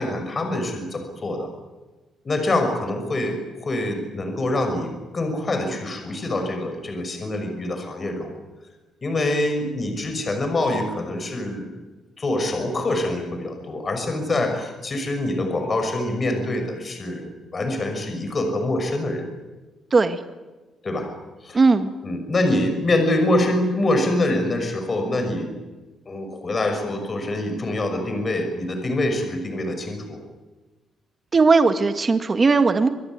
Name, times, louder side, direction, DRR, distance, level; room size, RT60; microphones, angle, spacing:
voice 1, 0.0-1.5 2.2-8.3 9.0-11.8 12.2-19.3 20.8-21.1 21.4-21.6 22.0-25.5 26.1-30.2, left 1 dB, 30° left, 6 dB, 5.9 m, -25 dB
voice 2, 21.5-21.9 31.3-32.9, right 4 dB, 30° right, 9 dB, 1.8 m, -17 dB
25.0 x 20.5 x 9.6 m, 1.2 s
cardioid pair, 130°, 0 cm